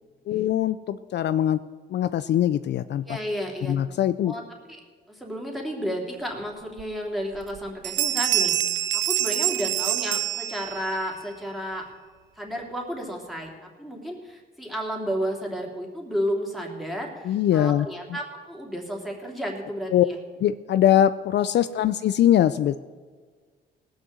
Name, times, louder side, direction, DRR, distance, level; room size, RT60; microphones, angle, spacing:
voice 1, 0.3-1.6 1.9-3.0 3.7-4.3 17.2-17.9 19.9-20.1 20.4-22.8, left 11 dB, 60° left, 13 dB, 0.4 m, -22 dB
voice 2, 3.0-3.8 4.2-4.4 5.1-11.9 12.4-13.5 13.8-20.2 21.6-22.0, equal, ahead, -1 dB, 3.1 m, -32 dB
Bell, 6.8-6.9 7.3-7.6 7.8-11.0, right 13 dB, 70° right, 0.4 m, -26 dB
18.0 x 6.4 x 7.6 m, 1.5 s
cardioid pair, 90°, 20 cm